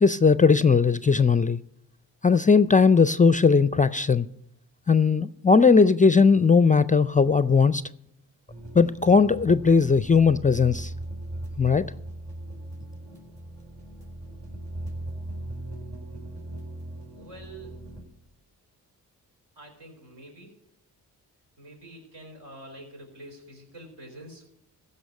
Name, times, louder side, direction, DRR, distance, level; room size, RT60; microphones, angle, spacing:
voice 1, 0.0-1.6 2.2-4.3 4.9-7.8 8.7-10.9 11.6-11.8, left 5 dB, 20° left, 16 dB, 0.4 m, -18 dB
sound 1, 8.5-18.0, right 1 dB, 40° right, 5.0 m, -39 dB
voice 2, 17.1-17.8 19.6-20.5 21.6-24.5, right 1 dB, 75° right, 1 dB, 4.3 m, -46 dB
15.0 x 5.4 x 8.2 m, 0.81 s
supercardioid pair, 45°, 42 cm